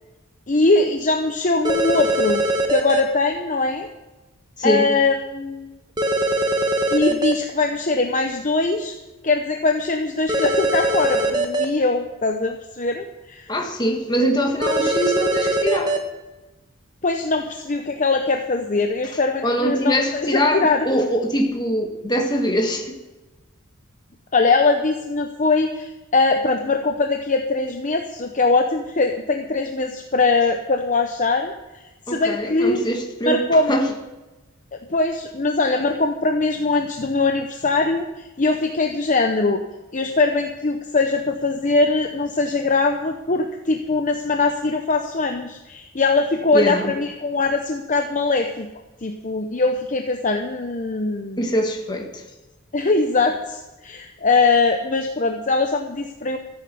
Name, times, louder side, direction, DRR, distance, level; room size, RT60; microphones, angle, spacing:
voice 1, 0.5-2.4 2.7-3.9 4.6-5.8 6.9-8.9 9.2-13.5 17.0-21.0 24.3-31.5 32.1-32.8 33.2-33.8 34.9-39.6 39.9-48.7 49.0-51.4 52.7-56.4, left 3 dB, 35° left, 4 dB, 0.8 m, -21 dB
sound 1, 1.6-3.0 6.0-7.3 10.3-11.6 14.6-16.0, right 1 dB, 20° right, 1.2 m, -21 dB
voice 2, 4.6-4.9 13.5-16.0 19.4-22.9 32.1-33.9 46.5-46.9 51.4-52.2, equal, 20° left, 3 dB, 1.6 m, -22 dB
14.0 x 8.1 x 6.9 m, 1.1 s
head